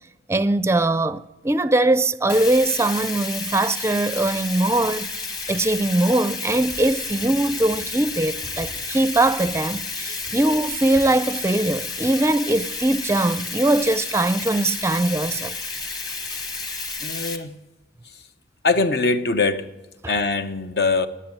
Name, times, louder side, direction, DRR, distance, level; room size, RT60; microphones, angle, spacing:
voice 1, 0.3-5.1 5.5-15.5 20.0-20.1, right 2 dB, 15° right, 0.5 m, -21 dB
Bathtub (filling or washing), 2.3-17.4, left 3 dB, 20° left, 1.2 m, -31 dB
sound 1, 6.5-11.2, right 1 dB, 85° left, 5.9 m, -45 dB
voice 2, 17.0-17.5 18.6-19.7 20.1-21.1, left 3 dB, 60° left, 1.0 m, -22 dB
19.5 x 7.5 x 9.7 m
head